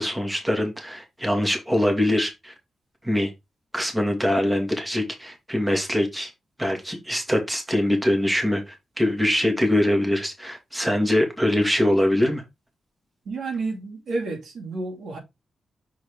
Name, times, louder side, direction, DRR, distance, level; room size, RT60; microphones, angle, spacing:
voice 1, 0.0-2.5 3.0-3.3 3.7-6.3 6.6-12.4, left 1 dB, 10° right, 2.3 m, -23 dB
voice 2, 13.3-15.2, right 3 dB, 75° right, 2.5 m, -30 dB
6.4 x 4.7 x 3.7 m
cardioid pair, 85°, 0 cm